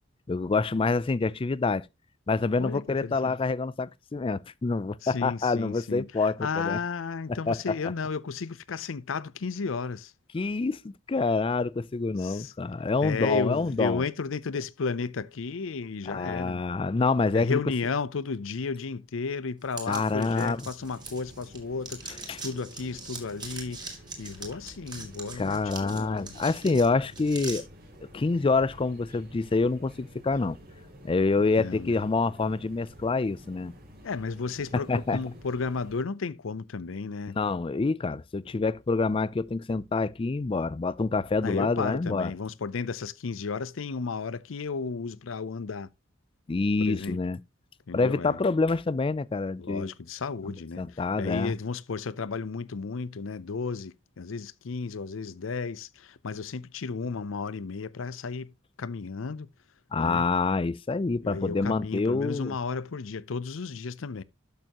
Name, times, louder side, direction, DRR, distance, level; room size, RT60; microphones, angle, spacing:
voice 1, 0.3-1.9 2.3-6.8 7.3-7.6 10.3-14.0 16.1-17.6 19.9-20.6 22.3-22.4 25.4-27.6 28.1-30.6 31.0-33.7 34.9-35.2 37.4-42.3 46.5-47.4 47.9-49.9 50.4-51.5 59.9-62.6, left 3 dB, 25° left, 0.4 m, -27 dB
voice 2, 2.6-3.4 5.0-10.1 12.2-12.5 13.0-16.6 17.3-23.8 24.2-26.3 31.6-32.0 34.0-37.4 41.4-45.9 46.8-47.2 47.9-48.4 49.6-58.5 58.8-59.5 60.0-60.3 61.2-64.2, left 4 dB, 85° left, 0.6 m, -33 dB
sound 1, 19.7-21.6 21.8-27.6, right 4 dB, 20° right, 2.9 m, -41 dB
sound 2, 20.8-36.0, equal, 50° right, 3.1 m, -50 dB
12.0 x 6.8 x 2.9 m
head